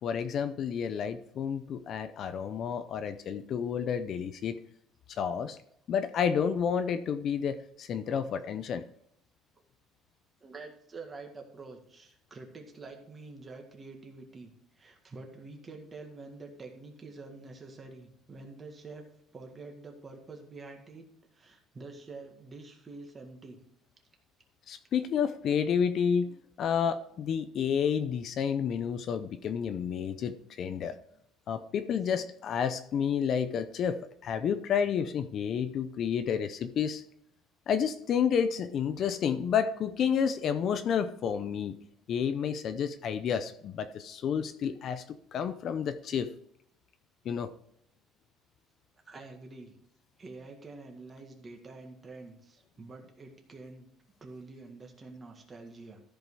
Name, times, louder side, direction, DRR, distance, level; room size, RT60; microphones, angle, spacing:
voice 1, 0.0-4.6 5.1-5.6 5.9-8.8 24.7-31.0 31.5-37.0 37.7-41.7 42.1-45.0 45.3-46.3 47.2-47.5, left 7 dB, 45° left, 11 dB, 0.5 m, -30 dB
voice 2, 10.4-19.0 19.3-21.1 21.3-23.6 32.0-32.1 49.1-49.8 50.2-53.9 54.2-56.0, right 3 dB, 20° right, 2 dB, 1.8 m, -47 dB
14.0 x 5.3 x 4.7 m, 0.71 s
cardioid pair, 155°, 0 cm